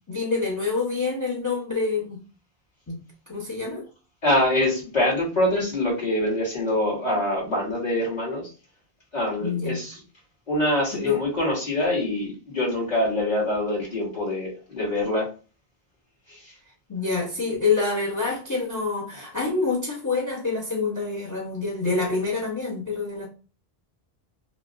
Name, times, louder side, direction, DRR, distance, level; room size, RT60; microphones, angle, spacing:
voice 1, 0.1-2.2 2.9-3.8 9.4-9.8 10.9-11.2 16.9-23.3, left 4 dB, 20° left, 0.6 m, -27 dB
voice 2, 4.2-8.5 9.1-10.0 10.5-15.3 16.3-16.5, left 1 dB, 45° left, 1.8 m, -25 dB
4.8 x 2.0 x 2.5 m
omnidirectional pair, 1.0 m